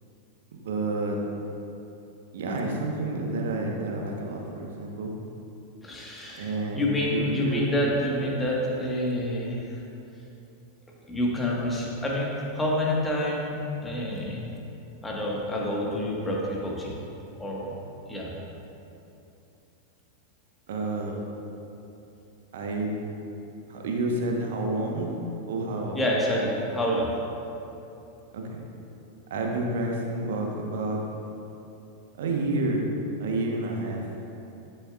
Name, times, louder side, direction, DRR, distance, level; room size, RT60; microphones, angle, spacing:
voice 1, 0.5-1.2 2.3-5.1 6.4-7.6 14.1-14.2 20.7-21.2 22.5-22.9 23.7-25.1 25.5-26.0 28.3-28.6 29.3-31.0 32.2-34.0, right 2 dB, 60° right, 1 dB, 1.0 m, -29 dB
voice 2, 5.8-9.8 11.1-13.6 13.8-14.5 15.0-16.9 17.3-17.7 18.1-18.3 25.9-27.1, left 1 dB, 10° left, -3 dB, 1.4 m, -28 dB
11.5 x 6.8 x 2.4 m, 2.9 s
figure-of-eight pair, 90°, 0 cm